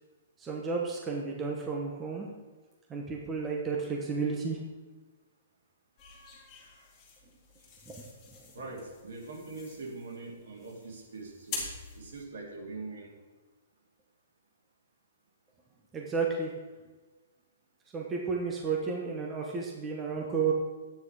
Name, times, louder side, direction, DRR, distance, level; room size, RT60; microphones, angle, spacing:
voice 1, 0.4-2.3 2.9-4.6 7.9-8.0 15.9-16.5 17.9-20.5, right 5 dB, 10° right, -1 dB, 1.1 m, -32 dB
sound 1, 6.0-12.2, left 4 dB, 15° left, 2.3 m, -45 dB
voice 2, 8.5-13.1, right 3 dB, 65° right, 0 dB, 2.9 m, -43 dB
11.0 x 9.1 x 4.9 m, 1.3 s
hypercardioid pair, 175°, 0 cm